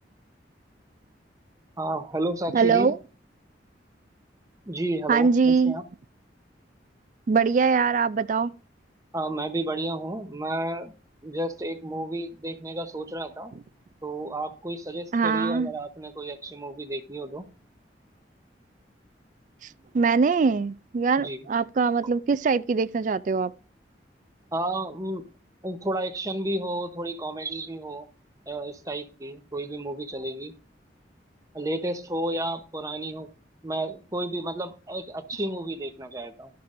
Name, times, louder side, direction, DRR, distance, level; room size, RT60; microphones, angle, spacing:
voice 1, 1.8-2.9 4.7-5.8 9.1-10.9 11.2-13.5 14.0-17.5 21.2-21.4 24.5-25.2 25.6-28.1 28.5-30.5 31.5-33.3 33.6-36.5, right 1 dB, 20° right, 0.9 m, -32 dB
voice 2, 2.5-3.0 5.1-5.8 7.3-8.5 15.1-15.7 19.9-23.5, right 5 dB, 45° right, 0.3 m, -22 dB
12.5 x 6.8 x 2.6 m
head